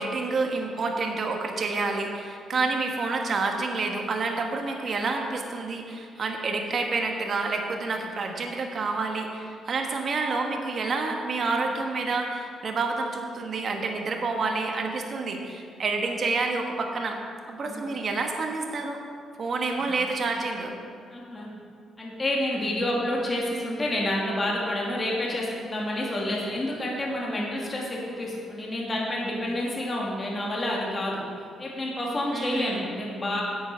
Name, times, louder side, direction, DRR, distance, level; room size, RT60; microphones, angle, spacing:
voice 1, 0.0-17.2 17.5-19.0 19.4-20.7 32.3-32.8, right 3 dB, 50° right, 2 dB, 1.3 m, -28 dB
voice 2, 21.1-21.5 22.0-31.2 31.6-33.4, left 1 dB, 30° left, -3 dB, 2.4 m, -29 dB
9.4 x 8.3 x 5.5 m, 2.2 s
cardioid pair, 90°, 0 cm